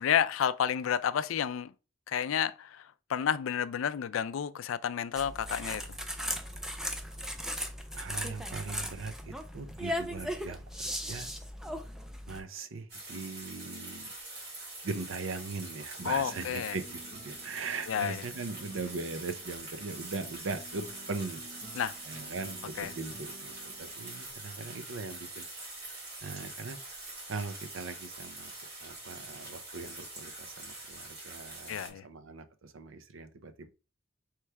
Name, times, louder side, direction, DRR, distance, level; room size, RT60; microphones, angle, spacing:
voice 1, 0.0-1.7 2.1-5.8 16.0-16.8 17.9-18.2 21.7-21.9 22.8-22.9 31.7-32.0, left 8 dB, 80° left, 0.3 m, -30 dB
sound 1, 5.1-12.4, equal, 5° right, 0.4 m, -37 dB
voice 2, 7.9-11.3 12.3-14.1 14.8-17.0 17.2-21.5 22.1-25.5 25.8-26.8 27.3-28.5 28.8-33.7, right 4 dB, 80° right, 0.6 m, -40 dB
sound 2, 12.9-31.9, right 2 dB, 55° right, 2.3 m, -44 dB
sound 3, 16.0-25.3, right 2 dB, 20° right, 2.1 m, -53 dB
4.6 x 3.2 x 3.3 m
head